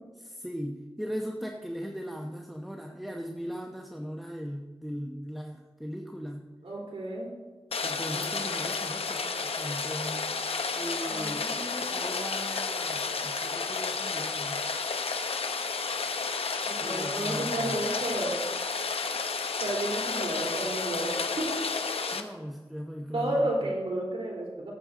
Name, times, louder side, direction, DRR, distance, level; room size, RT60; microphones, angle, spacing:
voice 1, 0.2-6.4 7.8-10.3 10.7-14.6 16.8-17.9 22.1-23.4, equal, ahead, 2 dB, 1.0 m, -38 dB
voice 2, 6.6-7.3 11.0-12.0 16.6-18.4 19.6-21.5 23.1-24.7, right 1 dB, 80° right, -3 dB, 3.5 m, -32 dB
Rain, 7.7-22.2, left 4 dB, 90° left, 0.8 m, -31 dB
18.0 x 8.0 x 3.8 m, 1.3 s
wide cardioid pair, 60°, 10 cm